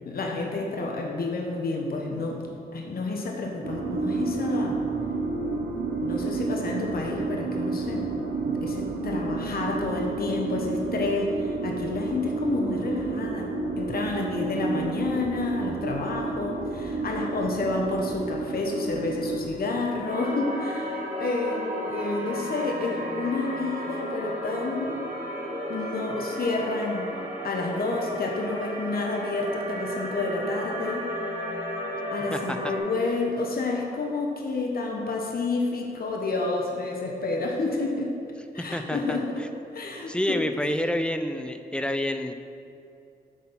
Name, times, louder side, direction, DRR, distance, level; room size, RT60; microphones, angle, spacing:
voice 1, 0.1-2.5 2.7-4.8 5.6-5.7 6.0-25.0 25.7-27.1 27.4-31.1 32.1-38.1 38.5-40.4, left 3 dB, 60° left, 0 dB, 1.0 m, -30 dB
sound 1, 3.6-19.5, right 3 dB, 90° right, 0.9 m, -30 dB
sound 2, 20.0-32.8, equal, 45° right, 1.7 m, -33 dB
voice 2, 32.3-32.7 38.7-39.5 40.1-42.3, left 1 dB, 5° left, 8 dB, 0.5 m, -28 dB
8.3 x 4.2 x 5.7 m, 2.5 s
cardioid pair, 70°, 18 cm